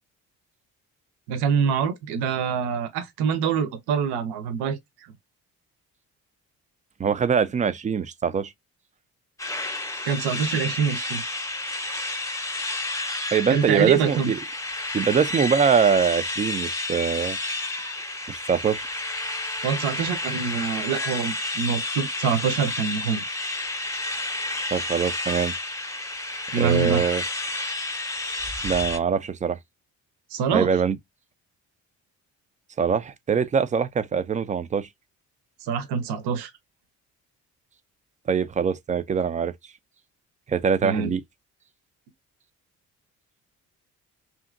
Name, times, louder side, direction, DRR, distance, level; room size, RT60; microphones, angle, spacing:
voice 1, 1.3-4.8 10.1-11.2 13.5-14.3 19.6-23.2 26.5-27.0 30.3-30.7 35.6-36.5 40.8-41.1, right 6 dB, 60° right, 0.7 m, -25 dB
voice 2, 7.0-8.5 13.3-14.4 14.9-17.4 18.3-18.9 24.7-25.5 26.6-27.2 28.6-29.6 30.5-31.0 32.8-34.9 38.3-39.5 40.5-41.2, right 6 dB, 20° right, 0.3 m, -23 dB
sound 1, 9.4-29.0, left 2 dB, 5° left, 0.7 m, -31 dB
2.8 x 2.6 x 2.4 m
hypercardioid pair, 45°, 44 cm